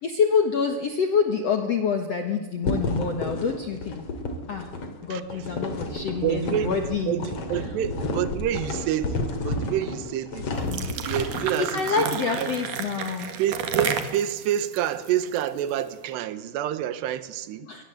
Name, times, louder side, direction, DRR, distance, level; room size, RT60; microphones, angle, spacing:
voice 1, 0.0-4.1 4.5-4.7 5.0-7.3 7.6-7.7 10.6-10.8 11.6-13.3 17.7-17.8, left 5 dB, 75° left, 1.4 m, -26 dB
sound 1, 2.6-11.6, left 2 dB, 40° left, 2.9 m, -31 dB
voice 2, 6.2-6.8 7.1-10.5 11.0-12.5 13.4-17.7, right 11 dB, 75° right, 3.2 m, -28 dB
sound 2, 10.5-15.8, right 7 dB, 55° right, 2.7 m, -31 dB
23.5 x 20.0 x 7.9 m
omnidirectional pair, 5.1 m